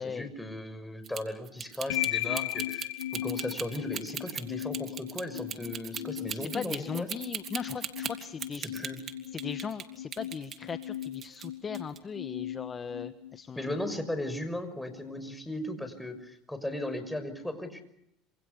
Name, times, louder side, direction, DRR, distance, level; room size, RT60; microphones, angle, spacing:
voice 1, 0.0-7.1 8.6-9.0 13.6-17.8, left 1 dB, 5° left, 9 dB, 6.0 m, -37 dB
sound 1, 1.0-9.8 10.1-11.5 11.7-12.0, right 8 dB, 45° right, 3.4 m, -38 dB
sound 2, 1.9-14.0, left 13 dB, 85° left, 1.4 m, -37 dB
voice 2, 6.3-8.8 9.3-13.8, left 6 dB, 30° left, 10 dB, 1.4 m, -38 dB
27.0 x 27.0 x 6.8 m, 0.78 s
supercardioid pair, 90°, 0 cm